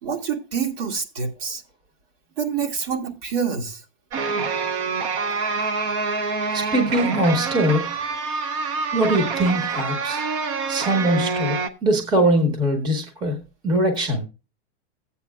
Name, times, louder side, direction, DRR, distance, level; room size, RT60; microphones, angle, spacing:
voice 1, 0.0-1.6 2.4-3.8, right 6 dB, 60° right, 1.9 m, -27 dB
sound 1, 4.1-11.7, right 4 dB, 30° right, 0.5 m, -26 dB
voice 2, 6.5-8.1 8.9-10.2 10.7-14.2, right 1 dB, 15° right, 0.9 m, -22 dB
14.5 x 8.4 x 2.3 m
supercardioid pair, 165°, 34 cm